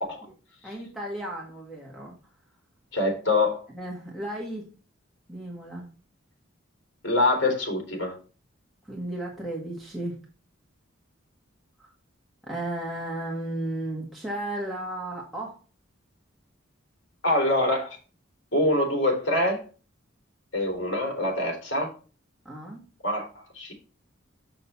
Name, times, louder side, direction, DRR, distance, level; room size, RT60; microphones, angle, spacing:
voice 1, 0.6-2.2 3.7-4.7 5.3-5.9 8.9-10.2 11.8-11.9 12.5-15.6 22.5-22.8, right 1 dB, ahead, 1.8 m, -34 dB
voice 2, 2.9-3.7 7.0-8.2 17.2-17.9 18.5-19.6 20.5-21.9 23.0-23.3 23.5-23.7, left 1 dB, 60° left, 3.3 m, -24 dB
6.8 x 6.4 x 4.2 m
head